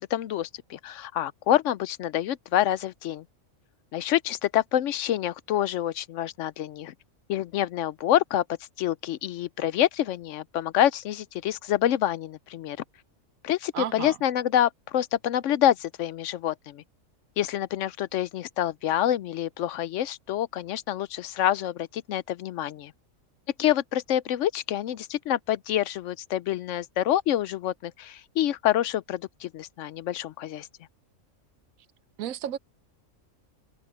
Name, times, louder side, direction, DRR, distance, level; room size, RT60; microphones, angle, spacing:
voice 1, 0.1-3.2 3.9-6.9 7.3-8.4 8.8-12.8 13.4-16.8 17.4-22.9 23.6-30.7, left 12 dB, 70° left, 0.9 m, -27 dB
voice 2, 13.7-14.2 32.2-32.6, right 10 dB, 90° right, 1.1 m, -32 dB
open air
omnidirectional pair, 1.4 m